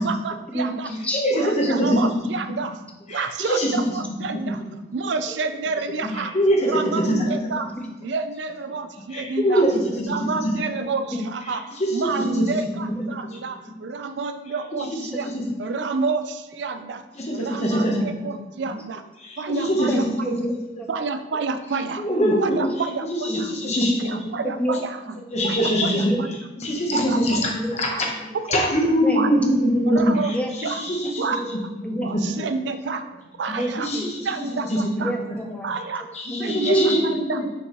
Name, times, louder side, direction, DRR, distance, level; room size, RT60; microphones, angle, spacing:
voice 1, 0.0-0.9 1.3-2.8 3.1-4.6 4.9-6.3 6.6-7.7 8.0-9.7 10.0-15.3 15.6-17.0 17.3-19.0 19.4-20.3 20.9-22.1 22.4-23.5 24.0-25.0 25.4-26.4 26.9-28.0 28.3-28.7 29.1-29.3 29.9-30.3 30.6-30.8 31.2-31.4 32.0-33.0 33.4-33.9 34.2-35.1 35.6-36.1 36.4-37.4, right 4 dB, 75° right, 10 dB, 0.4 m, -29 dB
voice 2, 0.5-1.2 6.0-6.2 7.8-7.9 11.1-11.2 12.7-13.2 15.1-15.2 18.0-18.4 19.9-20.9 22.2-22.6 23.3-23.8 24.6-24.8 25.1-25.2 26.0-26.2 26.5-26.6 27.5-27.8 29.0-29.2 30.3-30.5 30.8-30.9 31.8-32.1 32.4-32.5 33.5-34.1 35.0-35.8 36.3-37.0, equal, 5° left, 1 dB, 0.7 m, -30 dB
voice 3, 1.1-2.0 3.1-3.7 6.3-7.3 9.1-9.7 10.0-10.1 11.8-11.9 12.2-12.3 17.2-18.0 19.2-19.9 22.0-22.7 23.3-24.2 25.3-26.1 26.6-28.1 28.5-30.2 30.6-31.2 32.0-32.2 33.8-34.1 36.1-37.5, equal, 35° left, 0 dB, 1.1 m, -22 dB
6.5 x 5.3 x 3.0 m, 1.0 s
head